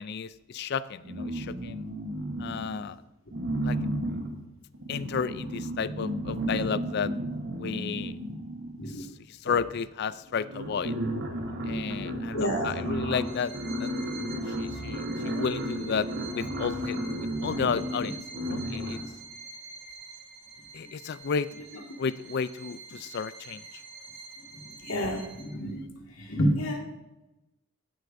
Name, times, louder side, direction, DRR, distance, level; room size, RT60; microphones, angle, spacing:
voice 1, 0.0-1.8 2.4-3.0 3.6-3.8 4.9-7.1 7.6-8.1 9.4-10.9 11.7-13.5 13.8-13.9 14.6-16.1 16.3-18.2 18.5-19.0 20.7-21.5 22.0-23.6, left 6 dB, 50° left, 16 dB, 0.4 m, -32 dB
sound 1, 1.0-2.9 3.3-9.0 9.9-10.0 10.3-19.2, right 1 dB, 55° right, 1.1 m, -33 dB
voice 2, 12.0-12.7 18.0-18.1 18.8-19.1 24.5-26.8, equal, 80° left, 0 dB, 2.0 m, -30 dB
Bowed string instrument, 13.2-25.7, right 4 dB, 70° right, 3.1 m, -47 dB
16.0 x 8.0 x 2.6 m, 0.99 s
head